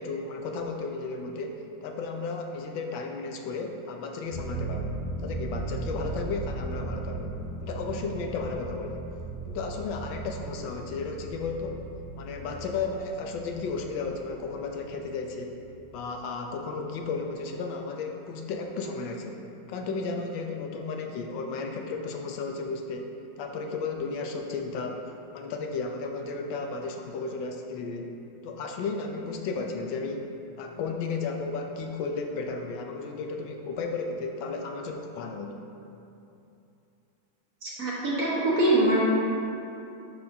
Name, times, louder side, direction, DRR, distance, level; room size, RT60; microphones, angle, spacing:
voice 1, 0.0-7.3 7.6-9.0 9.5-11.8 12.2-15.6 15.9-19.4 19.7-25.0 25.3-28.1 28.4-30.3 30.6-35.6, left 4 dB, 75° left, 2 dB, 1.3 m, -34 dB
sound 1, 4.3-15.6 15.9-16.0, right 3 dB, 45° left, 1.2 m, -37 dB
voice 2, 37.6-39.0, right 1 dB, 50° right, -7 dB, 1.5 m, -24 dB
11.5 x 4.3 x 2.7 m, 2.7 s
omnidirectional pair, 2.2 m